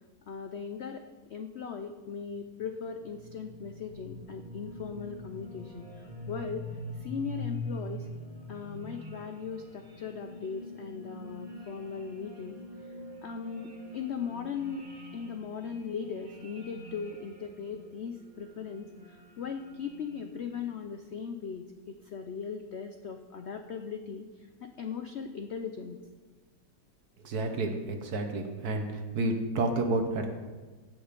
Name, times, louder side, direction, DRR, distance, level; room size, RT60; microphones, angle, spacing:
voice 1, 0.3-1.0 1.3-5.9 6.3-6.7 6.9-8.1 8.5-12.6 12.8-12.9 13.2-14.9 15.1-24.3 24.6-26.0, left 6 dB, 85° left, 7 dB, 0.5 m, -38 dB
sound 1, 2.4-20.6, left 1 dB, 25° right, 1.9 m, -44 dB
voice 2, 27.2-28.8 29.1-30.3, right 2 dB, 60° right, 5 dB, 1.6 m, -30 dB
15.5 x 6.3 x 5.1 m, 1.3 s
omnidirectional pair, 1.9 m